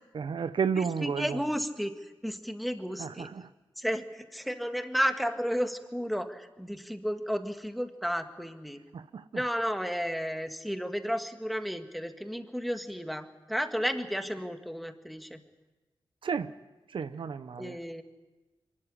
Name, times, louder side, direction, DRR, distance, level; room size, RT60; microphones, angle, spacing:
voice 1, 0.1-1.4 3.0-3.5 8.9-9.4 16.2-16.5 16.9-17.8, right 6 dB, 70° right, 0.7 m, -32 dB
voice 2, 0.8-1.9 2.2-3.3 3.8-8.8 9.3-15.4 17.6-18.0, equal, ahead, 1.7 m, -33 dB
24.0 x 13.0 x 10.0 m
cardioid pair, 70°, 9 cm